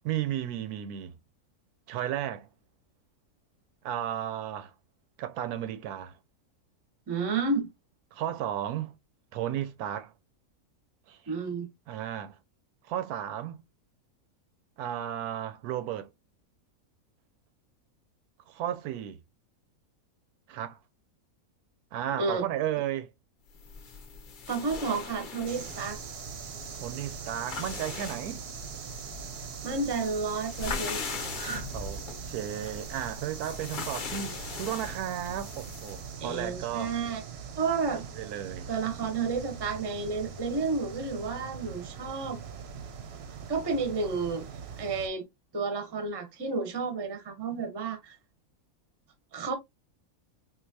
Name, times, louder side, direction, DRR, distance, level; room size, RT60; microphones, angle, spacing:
voice 1, 0.0-1.1 1.9-2.5 3.8-4.7 5.2-6.2 8.1-9.0 9.3-10.1 11.1-11.3 11.9-12.4 12.8-13.6 14.8-16.1 18.5-19.2 20.5-20.8 21.9-23.1 26.8-28.4 31.7-37.0 38.2-38.7, right 11 dB, 85° right, 1.1 m, -34 dB
voice 2, 7.1-7.7 11.3-11.7 22.2-22.5 24.5-26.0 29.6-31.7 36.2-37.2 37.6-38.0 38.7-42.4 43.5-44.5 44.8-45.3 45.5-48.2 49.3-49.5, right 4 dB, 25° right, 0.5 m, -31 dB
sound 1, 23.5-36.1, left 5 dB, 55° left, 0.5 m, -41 dB
sound 2, 25.5-45.1, right 6 dB, 60° right, 0.7 m, -42 dB
3.9 x 2.6 x 2.6 m
omnidirectional pair, 1.6 m